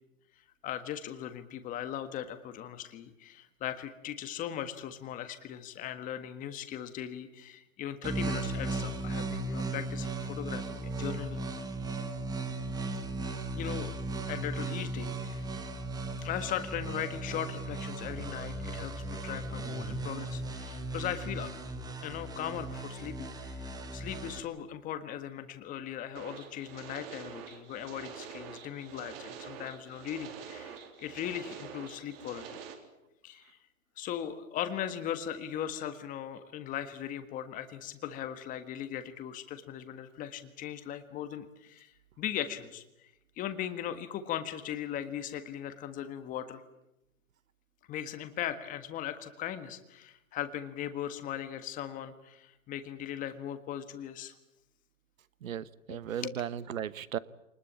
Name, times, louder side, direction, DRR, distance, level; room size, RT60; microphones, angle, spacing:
voice 1, 0.6-11.4 13.5-13.9 14.3-15.4 16.2-18.9 19.2-21.5 22.0-32.6 33.2-33.4 34.0-42.8 43.4-46.6 47.9-54.3 55.9-56.0 56.2-56.3, left 10 dB, 20° left, 9 dB, 1.6 m, -38 dB
sound 1, 8.0-24.4, right 2 dB, 10° right, 1.5 m, -36 dB
sound 2, 26.1-32.7, right 8 dB, 45° right, 4.0 m, -46 dB
voice 2, 55.4-57.2, right 9 dB, 70° right, 17 dB, 1.2 m, -36 dB
24.5 x 20.5 x 8.6 m, 0.87 s
hypercardioid pair, 140°, 42 cm